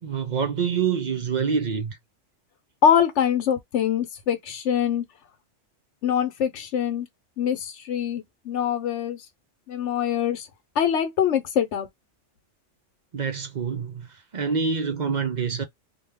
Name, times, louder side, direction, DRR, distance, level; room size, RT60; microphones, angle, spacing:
voice 1, 0.0-2.0 13.1-15.6, right 6 dB, 45° right, 0.6 m, -26 dB
voice 2, 2.8-5.1 6.0-7.1 7.4-9.2 9.7-10.5 10.8-11.9, left 8 dB, 75° left, 1.1 m, -24 dB
2.9 x 2.3 x 3.4 m
omnidirectional pair, 1.2 m